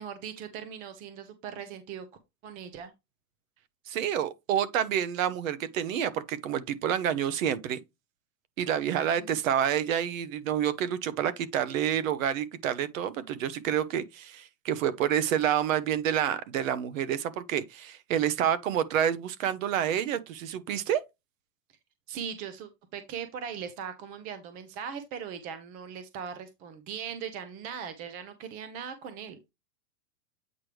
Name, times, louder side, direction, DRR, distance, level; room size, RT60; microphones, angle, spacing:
voice 1, 0.0-2.1 2.4-2.9 8.8-9.4 22.1-29.4, right 7 dB, 20° right, 0.6 m, -39 dB
voice 2, 3.9-7.8 8.6-21.0, right 9 dB, 55° right, 1.1 m, -28 dB
8.5 x 4.7 x 3.2 m
supercardioid pair, 150°, 48 cm